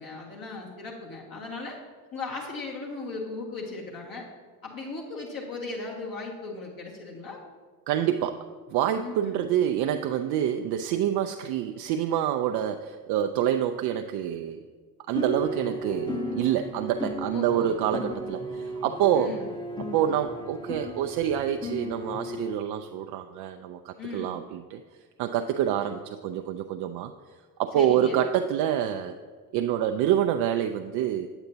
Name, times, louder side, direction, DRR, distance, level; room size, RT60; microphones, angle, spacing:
voice 1, 0.0-1.8 2.1-4.3 4.6-7.4 9.0-9.5 17.3-17.8 19.1-19.5 24.0-24.4 27.7-28.3, left 3 dB, 45° left, -3 dB, 1.8 m, -37 dB
voice 2, 7.9-14.6 15.1-19.4 19.9-24.8 25.2-27.1 27.6-29.2 29.5-31.3, right 10 dB, 55° right, 6 dB, 0.5 m, -27 dB
sound 1, 15.1-22.5, left 1 dB, 10° left, 1.0 m, -35 dB
8.0 x 7.9 x 2.7 m, 1.5 s
hypercardioid pair, 60°, 46 cm